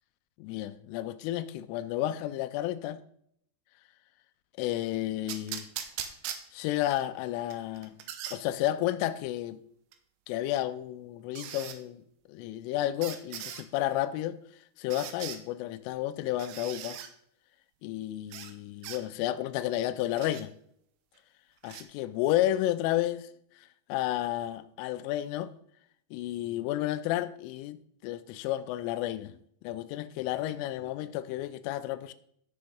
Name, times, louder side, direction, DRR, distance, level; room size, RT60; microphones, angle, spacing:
voice 1, 0.4-3.0 4.6-5.7 6.5-7.9 8.3-9.6 10.3-14.4 14.8-17.0 17.8-20.5 21.6-23.3 23.6-25.5 26.1-32.1, left 13 dB, 85° left, 3.1 m, -32 dB
sound 1, 5.3-7.0 7.5-8.4 9.9-10.0 11.3-11.8 13.0-13.6 14.9-15.4 16.4-17.1 18.3-18.5 18.8-19.0 20.2-20.4 21.6-21.8, right 10 dB, 80° right, 3.1 m, -40 dB
13.5 x 5.5 x 5.3 m
omnidirectional pair, 5.7 m